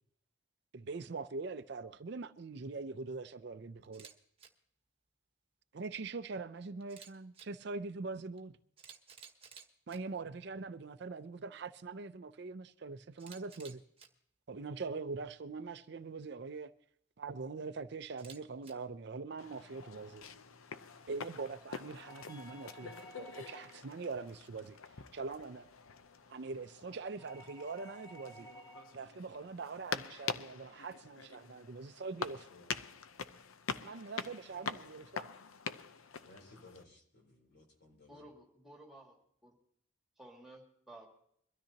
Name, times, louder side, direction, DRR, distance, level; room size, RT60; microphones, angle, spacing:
voice 1, 0.7-4.1 5.7-8.5 9.9-13.8 14.5-16.7 17.2-20.2 21.1-24.8 25.1-25.7 26.3-28.5 28.9-32.4 33.7-35.3, right 4 dB, 55° right, 0.5 m, -43 dB
Camera, 3.8-4.1 4.4-4.5 6.8-7.5 8.4-8.5 8.8-10.0 13.2-14.1 18.1-18.7, right 7 dB, 30° right, 1.2 m, -54 dB
sound 1, 19.4-36.8, left 6 dB, 90° left, 0.7 m, -45 dB
sound 2, 22.0-23.9 27.2-29.0, right 1 dB, 20° left, 1.2 m, -54 dB
voice 2, 22.3-23.6 32.1-32.8 34.3-35.0 36.2-38.3, left 2 dB, 55° left, 3.9 m, -61 dB
voice 3, 38.1-39.2 39.4-39.5 40.2-41.1, right 1 dB, ahead, 2.4 m, -54 dB
23.0 x 13.0 x 2.9 m
head